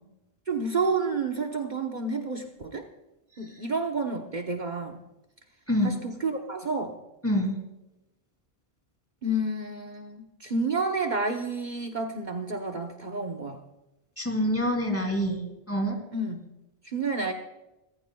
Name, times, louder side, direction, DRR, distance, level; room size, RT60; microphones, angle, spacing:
voice 1, 0.5-2.9 3.4-5.0 5.8-6.9 9.2-13.6 16.1-16.5 16.8-17.3, right 3 dB, 50° right, 2 dB, 1.2 m, -30 dB
voice 2, 5.7-6.0 7.2-7.6 14.2-16.0, equal, 15° left, 2 dB, 2.9 m, -26 dB
26.0 x 15.0 x 2.3 m, 0.95 s
omnidirectional pair, 1.0 m